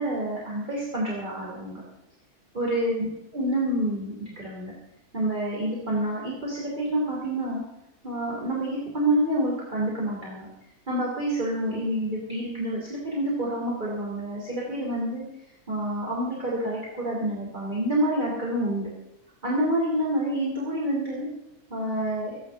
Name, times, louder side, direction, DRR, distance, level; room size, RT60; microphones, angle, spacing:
voice 1, 0.0-1.8 2.5-3.1 3.3-4.7 5.1-7.6 8.0-10.5 10.9-15.2 15.7-18.9 19.4-21.3 21.7-22.3, right 1 dB, 30° right, -5 dB, 3.4 m, -28 dB
13.5 x 11.0 x 6.4 m, 0.87 s
omnidirectional pair, 1.6 m